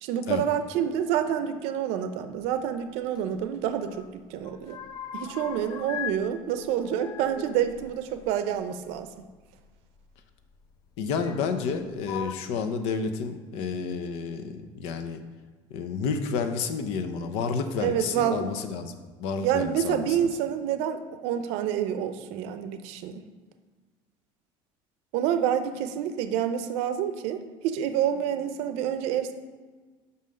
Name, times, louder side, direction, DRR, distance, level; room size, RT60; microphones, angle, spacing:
voice 1, 0.0-4.8 5.1-9.1 17.8-18.5 19.4-23.2 25.1-29.3, right 9 dB, 75° right, 10 dB, 0.6 m, -28 dB
sound 1, 3.2-4.1 4.3-6.2 6.5-9.0 10.0-10.1 11.1-11.7 12.0-12.3, left 9 dB, 40° left, 0.4 m, -39 dB
voice 2, 11.0-15.2 15.7-20.1, left 5 dB, 70° left, 8 dB, 0.7 m, -30 dB
5.6 x 5.6 x 6.4 m, 1.4 s
cardioid pair, 160°, 11 cm